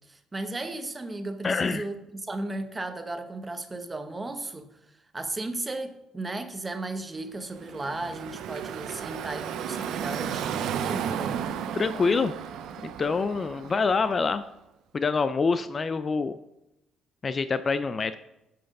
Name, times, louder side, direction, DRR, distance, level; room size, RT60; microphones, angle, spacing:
voice 1, 0.1-4.7 5.1-11.5, right 2 dB, 20° right, 0.9 m, -35 dB
voice 2, 1.4-1.8 11.7-12.3 12.8-14.4 14.9-16.4 17.2-18.2, left 4 dB, 30° left, 0.3 m, -26 dB
Car passing by / Traffic noise roadway noise, 7.4-14.4, right 8 dB, 75° right, 0.6 m, -34 dB
8.6 x 5.7 x 5.4 m
cardioid pair, 110°, 0 cm